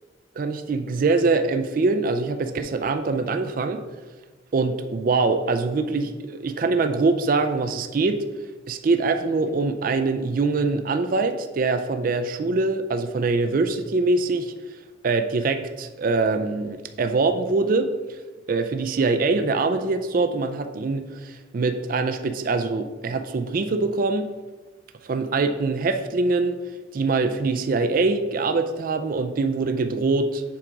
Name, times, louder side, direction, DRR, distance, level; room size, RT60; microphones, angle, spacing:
voice 1, 0.4-3.8 4.5-8.2 8.7-14.5 15.0-18.2 18.5-24.3 25.0-26.6 26.9-30.4, right 3 dB, 45° right, 8 dB, 0.4 m, -23 dB
7.5 x 4.8 x 3.9 m, 1.3 s
head